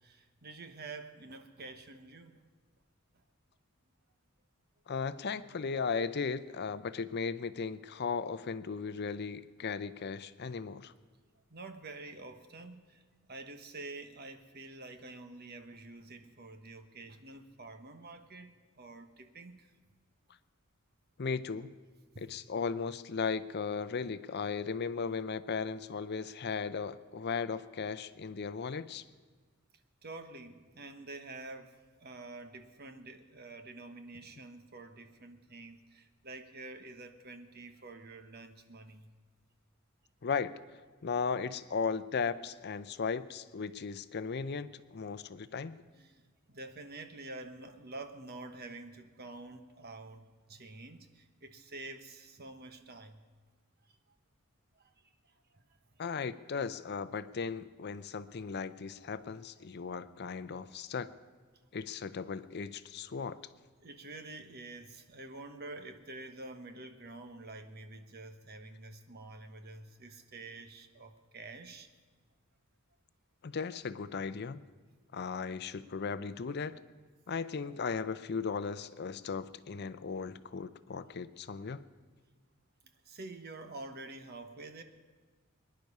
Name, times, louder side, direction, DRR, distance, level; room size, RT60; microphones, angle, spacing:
voice 1, 0.0-2.5 11.5-13.0 13.3-19.7 22.1-22.3 30.0-39.1 45.9-46.2 46.5-53.3 54.8-54.9 55.5-55.6 63.8-71.9 83.0-84.8, right 2 dB, 50° right, 7 dB, 1.2 m, -48 dB
voice 2, 4.9-10.9 21.2-21.7 22.2-29.0 40.2-40.5 41.0-45.8 56.0-61.1 61.7-63.4 73.4-74.6 75.1-76.8 77.3-81.8, left 5 dB, 50° left, 13 dB, 0.5 m, -36 dB
24.0 x 10.5 x 5.5 m, 1.4 s
head